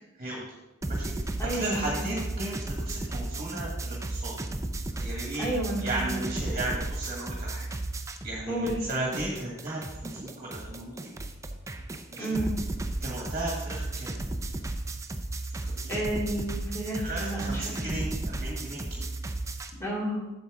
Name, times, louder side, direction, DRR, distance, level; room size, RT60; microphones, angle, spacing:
sound 1, 0.8-8.4 8.7-19.7, right 2 dB, 15° right, 0.5 m, -34 dB
voice 1, 0.9-1.3 1.5-4.3 4.9-5.4 5.8-7.6 8.2-11.2 12.1-12.4 13.0-14.2 15.6-16.0 17.0-19.0, right 2 dB, 40° right, -3 dB, 1.6 m, -35 dB
voice 2, 1.4-2.0 5.4-6.2 8.5-8.8 12.2-12.5 15.9-17.9 19.8-20.2, right 1 dB, 15° left, -4 dB, 2.3 m, -31 dB
8.2 x 6.9 x 3.7 m, 1.0 s
head